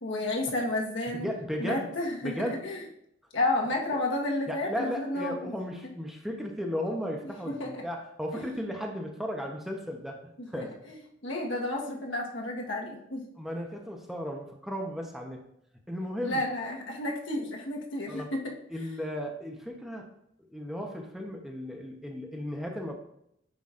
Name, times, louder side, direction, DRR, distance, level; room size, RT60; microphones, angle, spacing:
voice 1, 0.0-1.3 1.6-2.8 3.3-5.6 7.2-7.3 7.6-7.8 8.3-8.5 10.4-13.3 16.2-18.5, left 2 dB, 80° left, 0 dB, 1.4 m, -32 dB
voice 2, 1.1-1.9 2.2-2.6 4.5-10.2 10.5-10.8 13.4-15.5 15.9-16.4 18.1-18.3 18.7-20.1 20.5-22.9, equal, ahead, 1 dB, 0.9 m, -35 dB
9.2 x 6.0 x 2.5 m, 0.74 s
head